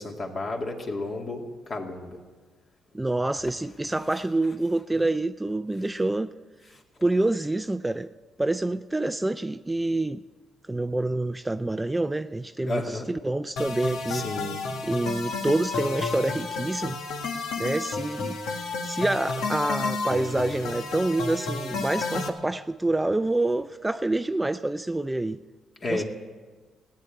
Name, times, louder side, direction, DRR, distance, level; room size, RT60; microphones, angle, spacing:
voice 1, 0.0-2.2 12.6-13.1 14.1-14.6 25.8-26.0, left 2 dB, 45° left, 1 dB, 2.5 m, -32 dB
voice 2, 2.9-6.3 7.0-8.1 8.4-10.2 10.7-14.3 14.8-17.0 17.6-25.4 25.9-26.0, right 2 dB, 15° right, 11 dB, 0.4 m, -27 dB
sound 1, 13.6-22.3, left 4 dB, 85° left, 1.7 m, -31 dB
16.0 x 9.5 x 8.8 m, 1.4 s
cardioid pair, 90°, 0 cm